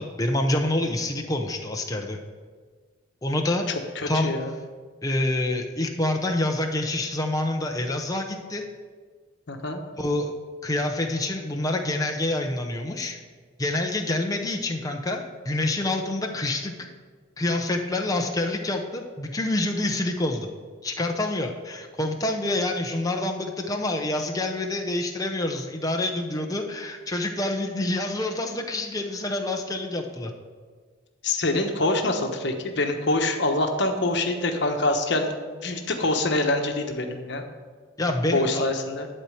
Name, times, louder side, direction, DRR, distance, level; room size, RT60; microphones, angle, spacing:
voice 1, 0.0-2.2 3.2-3.8 4.1-4.4 5.0-8.7 10.0-10.3 10.6-13.2 13.6-16.9 17.4-20.5 20.8-30.3 38.0-38.6, left 1 dB, 20° left, 2 dB, 0.7 m, -27 dB
voice 2, 4.0-4.5 9.5-9.8 31.2-37.4 38.3-39.1, left 2 dB, 60° left, 4 dB, 1.1 m, -25 dB
11.5 x 4.4 x 7.8 m, 1.5 s
head